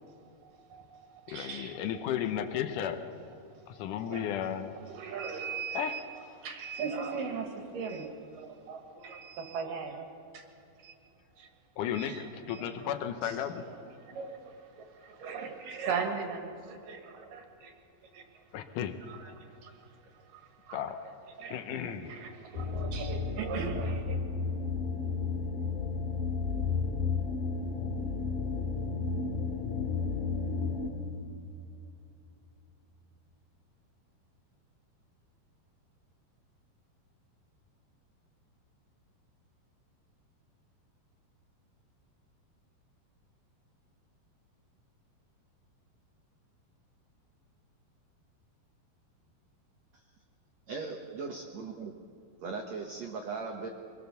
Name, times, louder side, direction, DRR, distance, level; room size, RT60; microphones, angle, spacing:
voice 1, 0.4-1.0 1.2-1.8 2.4-2.5 3.5-4.3 4.6-10.1 10.3-10.5 10.8-10.9 11.3-11.5 11.9-12.9 13.2-17.7 18.0-18.5 19.0-20.8 21.4-24.2, right 5 dB, 60° right, 4 dB, 3.0 m, -40 dB
voice 2, 1.3-3.0 3.7-4.8 5.7-6.0 11.8-13.7 18.5-19.0 20.7-21.1 21.5-22.2, left 9 dB, 80° left, 8 dB, 1.8 m, -34 dB
sound 1, 22.6-30.9, left 4 dB, 55° left, 3.2 m, -32 dB
voice 3, 50.7-51.9 52.4-53.7, right 4 dB, 80° right, 3 dB, 1.5 m, -38 dB
24.5 x 18.0 x 7.0 m, 2.7 s
omnidirectional pair, 4.9 m